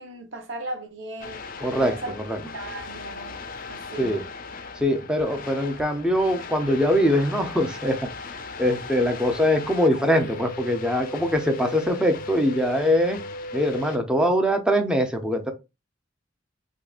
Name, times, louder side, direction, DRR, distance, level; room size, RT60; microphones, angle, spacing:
voice 1, 0.0-1.4 1.7-2.2 2.4-3.4 3.7-4.2, right 1 dB, 80° right, 1.0 m, -36 dB
sound 1, 1.2-14.0, left 3 dB, 45° left, 0.4 m, -37 dB
voice 2, 1.6-1.9 2.3-2.4 4.0-4.2 4.8-8.0 8.6-13.2 13.5-15.5, equal, 5° right, 0.6 m, -22 dB
3.6 x 2.7 x 2.4 m
head